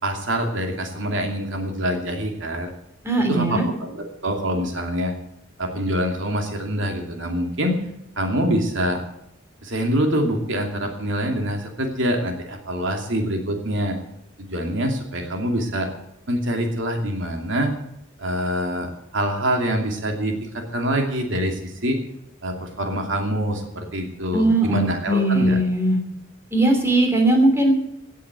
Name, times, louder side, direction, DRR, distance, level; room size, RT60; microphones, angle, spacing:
voice 1, 0.0-2.7 3.3-5.1 5.6-7.9 8.2-9.0 9.6-14.0 14.4-15.9 16.3-17.7 18.2-22.0 22.4-25.6, equal, 75° right, 3 dB, 2.7 m, -25 dB
voice 2, 3.0-3.6 24.3-26.0 26.5-27.7, right 1 dB, 15° right, 3 dB, 3.2 m, -19 dB
17.5 x 8.4 x 8.2 m, 0.79 s
head